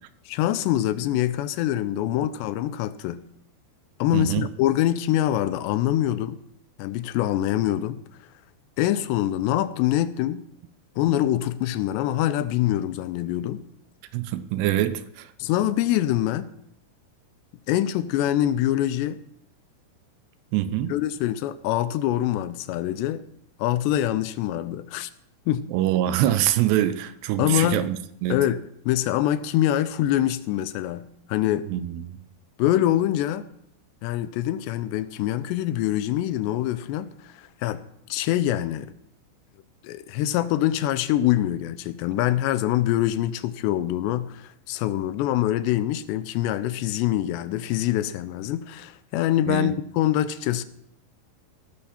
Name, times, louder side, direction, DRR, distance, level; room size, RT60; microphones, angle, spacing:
voice 1, 0.3-3.2 4.0-6.4 6.8-8.0 8.8-10.4 11.0-13.6 15.4-16.5 17.7-19.2 20.9-23.2 23.6-25.1 25.5-25.7 27.4-27.8 28.3-31.7 32.6-33.5 34.0-37.8 38.1-38.9 39.8-50.7, left 13 dB, 85° left, 2.8 m, -24 dB
voice 2, 4.1-4.5 14.1-15.3 15.6-15.7 20.5-20.9 25.7-28.4 31.7-32.2 49.5-49.7, right 12 dB, 80° right, 2.8 m, -25 dB
18.0 x 13.5 x 4.3 m
omnidirectional pair, 5.0 m